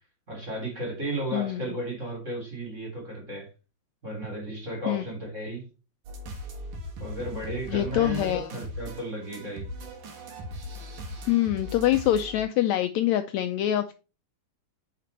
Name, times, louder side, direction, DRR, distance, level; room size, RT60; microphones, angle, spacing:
voice 1, 0.3-3.5 4.0-5.7 7.0-9.7, right 1 dB, 20° right, 3.2 m, -34 dB
sound 1, 6.1-12.4, left 1 dB, 70° right, 3.0 m, -39 dB
voice 2, 7.7-8.5 11.3-13.9, left 12 dB, 85° left, 1.6 m, -25 dB
9.2 x 5.3 x 4.1 m
omnidirectional pair, 3.8 m